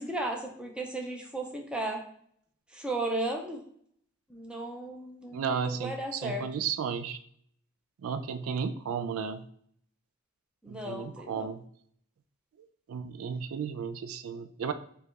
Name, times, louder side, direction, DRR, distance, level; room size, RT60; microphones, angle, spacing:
voice 1, 0.0-2.0 2.7-3.6 4.3-6.5 10.6-11.5, right 1 dB, 5° right, 1 dB, 0.7 m, -35 dB
voice 2, 5.3-7.2 8.0-9.4 10.7-11.6 12.9-14.7, right 6 dB, 75° right, 11 dB, 0.4 m, -33 dB
4.9 x 2.3 x 4.6 m, 0.63 s
head